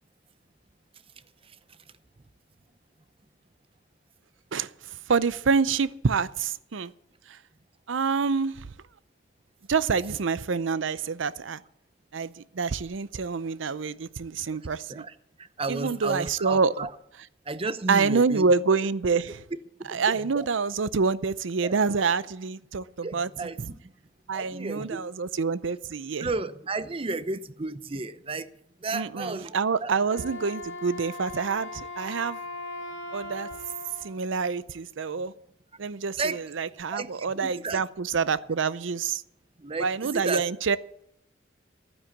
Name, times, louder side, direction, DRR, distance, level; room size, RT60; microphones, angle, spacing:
voice 1, 5.1-6.9 7.3-7.4 7.9-8.7 9.7-11.6 12.1-15.0 15.7-16.7 17.9-19.4 19.9-23.3 24.3-26.3 28.9-32.4 33.1-33.5 34.0-35.3 35.8-39.2 39.8-40.8, right 5 dB, 80° right, 0.6 m, -27 dB
voice 2, 15.6-16.9 17.5-18.5 19.9-20.5 21.6-21.8 23.0-23.8 24.3-25.0 26.2-28.5 28.8-29.6 29.8-30.0 36.2-36.4 36.9-37.8 39.6-40.4, right 3 dB, 30° right, 0.7 m, -33 dB
Wind instrument woodwind instrument, 30.0-34.2, left 2 dB, 75° left, 2.0 m, -39 dB
12.0 x 9.8 x 7.2 m
head